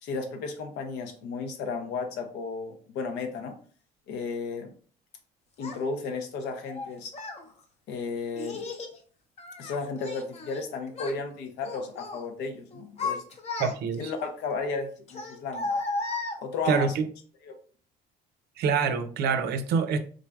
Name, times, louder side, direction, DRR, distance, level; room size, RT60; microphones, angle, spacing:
voice 1, 0.0-3.6 4.1-4.7 5.6-7.1 7.9-8.6 9.6-13.2 14.0-15.7 16.4-16.9 17.4-17.5, left 4 dB, 85° left, 0.7 m, -34 dB
Child speech kid speaking, 5.6-5.8 6.7-7.4 8.4-9.0 9.4-10.6 10.9-11.2 11.6-12.2 12.7-14.1 15.1-16.8, left 3 dB, 40° left, 0.7 m, -34 dB
voice 2, 13.6-14.1 16.7-17.1 18.6-20.0, right 5 dB, 70° right, 0.5 m, -26 dB
3.8 x 3.2 x 2.3 m
cardioid pair, 110°, 17 cm